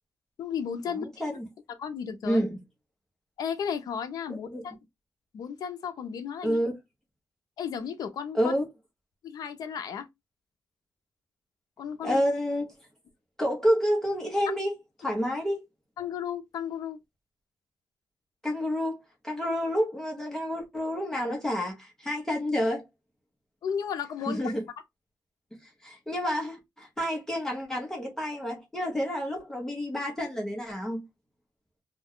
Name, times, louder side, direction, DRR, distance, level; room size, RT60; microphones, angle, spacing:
voice 1, 0.4-1.4 1.8-2.4 3.4-4.8 5.3-6.6 7.6-8.5 9.2-10.1 11.8-12.2 16.0-17.0 23.6-24.5, left 7 dB, 65° left, 0.5 m, -34 dB
voice 2, 1.0-1.5 2.2-2.6 4.5-4.6 6.4-6.7 8.3-8.7 12.0-12.7 13.4-14.7 15.0-15.6 18.4-19.0 19.2-22.8 24.3-24.6 25.8-31.0, equal, 5° left, 0.7 m, -29 dB
2.2 x 2.2 x 3.5 m
wide cardioid pair, 170°, 7 cm